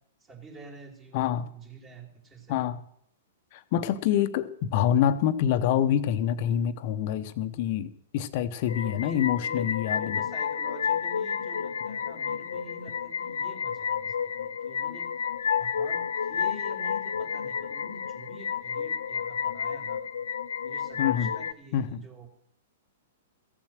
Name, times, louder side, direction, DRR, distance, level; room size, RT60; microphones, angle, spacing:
voice 1, 0.2-2.6 8.8-15.1 15.6-20.0 20.6-22.3, right 3 dB, 25° right, 1 dB, 3.2 m, -47 dB
voice 2, 1.1-1.5 2.5-2.8 3.5-10.2 21.0-21.3 21.7-22.0, left 10 dB, 50° left, 12 dB, 0.9 m, -26 dB
sound 1, 8.7-21.5, left 7 dB, 75° left, 0.5 m, -31 dB
15.0 x 7.3 x 6.4 m, 0.69 s
figure-of-eight pair, 110°, 0 cm